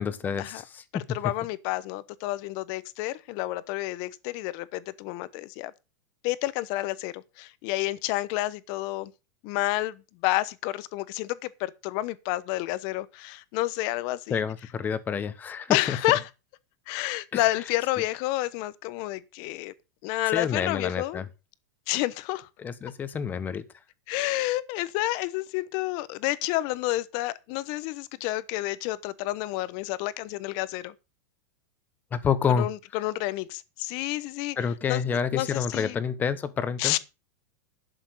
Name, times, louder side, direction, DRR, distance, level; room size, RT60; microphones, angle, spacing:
voice 1, 0.0-1.0 14.3-16.0 17.3-17.4 20.3-21.3 22.6-23.6 32.1-32.7 34.6-37.0, left 7 dB, 20° left, 1.3 m, -28 dB
voice 2, 1.1-5.7 6.2-9.1 9.4-14.4 15.7-16.2 16.9-19.7 20.0-21.2 21.9-22.5 24.1-30.9 32.6-34.6 34.9-35.0 35.3-36.0 36.8-37.0, left 17 dB, 45° left, 1.0 m, -29 dB
11.5 x 7.1 x 6.6 m
supercardioid pair, 150°, 10 cm